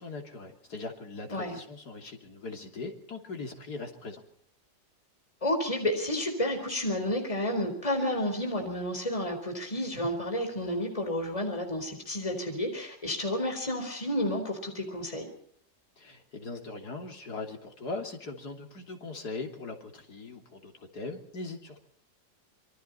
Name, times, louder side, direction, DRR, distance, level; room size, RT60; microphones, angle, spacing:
voice 1, 0.0-4.2 16.0-21.8, left 3 dB, 60° left, 3 dB, 3.6 m, -40 dB
voice 2, 5.4-15.3, left 1 dB, 20° left, 4 dB, 4.3 m, -31 dB
26.5 x 24.0 x 4.3 m, 0.65 s
omnidirectional pair, 1.9 m